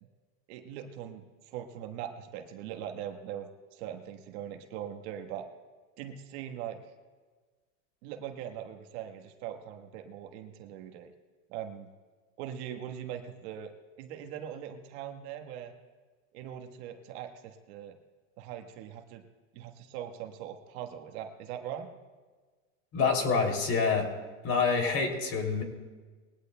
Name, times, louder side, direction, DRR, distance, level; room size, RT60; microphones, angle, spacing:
voice 1, 0.5-5.5 6.0-6.8 8.0-11.1 11.5-11.9 12.4-13.7 14.0-15.7 16.3-18.0 18.4-19.2 19.5-21.9, right 10 dB, 55° right, 4 dB, 1.4 m, -41 dB
voice 2, 22.9-24.1 24.4-25.6, left 5 dB, 35° left, 3 dB, 2.9 m, -27 dB
21.0 x 16.5 x 2.2 m, 1.4 s
supercardioid pair, 125°, 39 cm